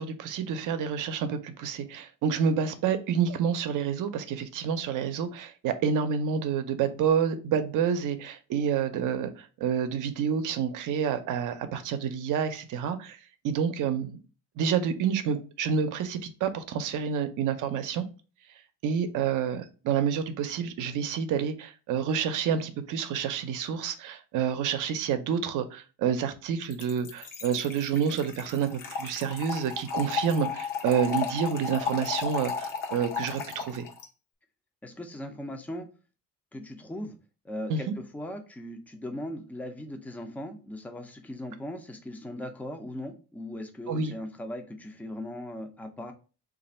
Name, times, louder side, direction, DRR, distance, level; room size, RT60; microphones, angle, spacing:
voice 1, 0.0-13.2 13.4-14.2 14.6-18.0 18.8-33.8 37.7-37.8 43.9-44.1, right 7 dB, 60° right, 0.6 m, -28 dB
Trickle dribble / Fill (with liquid), 26.7-34.1, left 6 dB, 65° left, 0.8 m, -34 dB
voice 2, 34.8-35.9 36.5-37.2 37.4-46.1, left 1 dB, 5° left, 0.4 m, -39 dB
3.1 x 2.5 x 4.1 m
cardioid pair, 130°, 34 cm